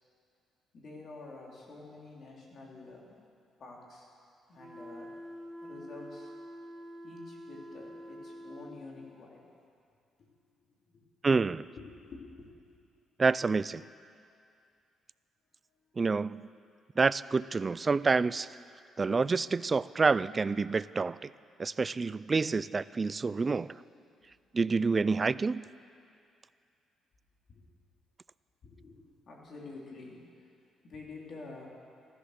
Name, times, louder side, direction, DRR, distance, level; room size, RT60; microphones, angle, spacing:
voice 1, 0.7-3.2 3.6-4.1 4.5-5.1 5.6-6.3 7.0-9.4 10.2-10.3 10.9-11.0 11.8-12.8 27.5-27.6 28.6-30.3 30.8-31.7, left 3 dB, 50° left, -2 dB, 3.5 m, -48 dB
sound 1, 4.6-8.8, equal, 5° right, 2.0 m, -46 dB
voice 2, 11.2-11.7 13.2-13.8 16.0-16.4 17.0-18.5 19.0-21.3 21.6-23.7 24.5-25.6, right 4 dB, 30° right, 18 dB, 0.3 m, -28 dB
15.0 x 14.0 x 6.6 m, 2.4 s
cardioid pair, 105°, 0 cm